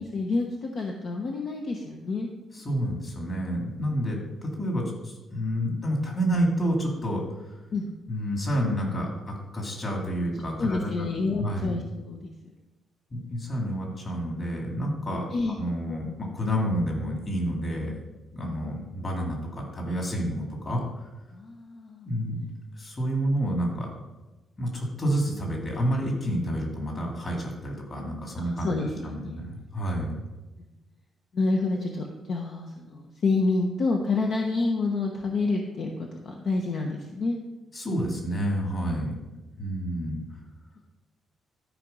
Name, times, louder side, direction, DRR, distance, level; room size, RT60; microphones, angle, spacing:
voice 1, 0.0-2.3 7.7-7.9 10.6-12.3 13.3-13.6 15.3-15.6 18.4-18.8 21.3-22.1 28.4-29.4 31.3-37.4, left 3 dB, 50° left, 1 dB, 1.0 m, -28 dB
voice 2, 2.5-7.2 8.1-11.1 11.4-11.8 13.1-18.0 18.3-20.8 22.1-22.4 22.8-23.9 24.6-28.7 29.0-30.2 37.7-39.2 39.6-40.2, equal, 30° left, 0 dB, 2.4 m, -29 dB
12.5 x 4.8 x 5.4 m, 1.1 s
cardioid pair, 170°, 0 cm